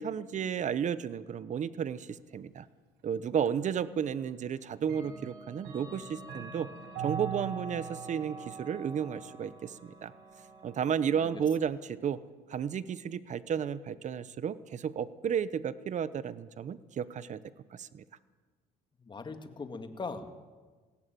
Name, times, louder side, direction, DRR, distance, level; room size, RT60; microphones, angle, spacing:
voice 1, 0.0-2.7 3.0-6.7 7.0-10.1 10.6-12.2 12.5-17.4 17.7-18.0, right 8 dB, 45° right, 16 dB, 1.0 m, -33 dB
Clock, 3.5-3.6 4.8-11.6, right 6 dB, 85° right, 5.4 m, -43 dB
voice 2, 19.0-20.4, left 4 dB, 25° left, 7 dB, 2.3 m, -40 dB
20.5 x 17.0 x 9.3 m, 1.4 s
cardioid pair, 110°, 17 cm